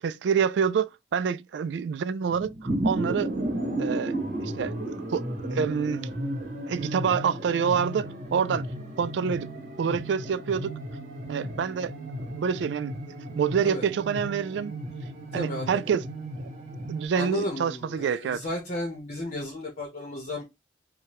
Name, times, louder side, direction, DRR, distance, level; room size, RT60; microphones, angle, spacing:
voice 1, 0.0-3.3 3.8-4.2 4.4-4.7 5.1-5.2 5.5-6.0 6.7-8.7 9.0-9.5 9.8-10.7 11.3-11.9 12.3-12.9 13.4-14.7 15.3-16.0 16.9-18.4, right 7 dB, 70° right, 0.3 m, -27 dB
sound 1, 2.3-17.1, right 1 dB, 50° right, 1.2 m, -34 dB
voice 2, 15.3-15.9 17.1-20.4, left 1 dB, 40° left, 0.9 m, -33 dB
4.7 x 2.2 x 2.9 m
head